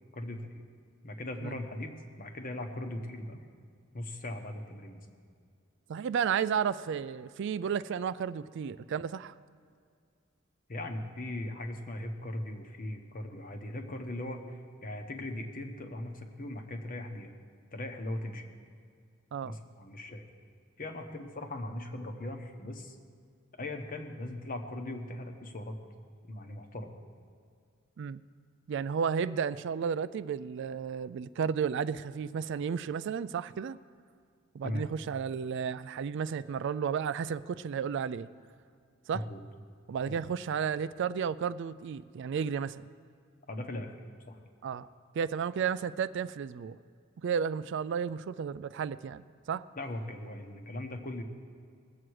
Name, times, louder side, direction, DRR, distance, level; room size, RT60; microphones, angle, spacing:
voice 1, 0.1-0.6 1.0-3.4 3.9-5.1 10.7-17.3 17.7-18.5 19.4-20.3 20.8-23.0 23.6-25.8 26.2-27.0 34.6-34.9 39.1-39.4 40.1-40.2 43.5-44.0 44.3-44.4 49.8-51.2, left 1 dB, 45° left, 5 dB, 1.1 m, -39 dB
voice 2, 5.9-9.3 19.3-19.6 28.0-28.2 28.7-33.8 34.5-38.3 39.1-39.3 39.9-42.8 44.6-44.9 45.1-46.8 47.2-49.6, right 7 dB, 60° right, 16 dB, 0.3 m, -33 dB
20.5 x 7.7 x 4.7 m, 2.2 s
head